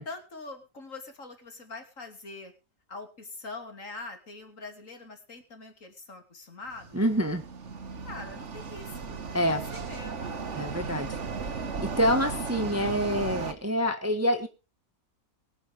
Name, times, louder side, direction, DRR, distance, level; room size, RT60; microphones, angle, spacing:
voice 1, 0.0-2.5 2.9-7.0 8.0-10.5, left 3 dB, 50° left, 6 dB, 3.2 m, -43 dB
sound 1, 6.7-13.5, right 5 dB, 50° right, 1.7 m, -36 dB
voice 2, 6.9-7.4 9.3-9.6 10.5-11.2 11.4-14.5, equal, 10° right, 7 dB, 1.3 m, -27 dB
22.5 x 9.3 x 3.5 m, 0.32 s
omnidirectional pair, 1.7 m